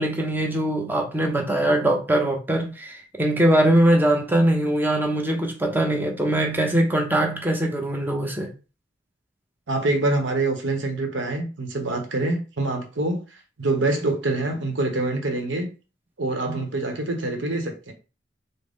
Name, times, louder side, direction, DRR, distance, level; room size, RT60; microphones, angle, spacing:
voice 1, 0.0-8.5 16.5-16.6, right 1 dB, 10° right, 0.7 m, -22 dB
voice 2, 9.7-13.2 13.6-15.7 16.2-17.9, right 2 dB, 75° right, 0.9 m, -25 dB
3.8 x 2.1 x 3.5 m
head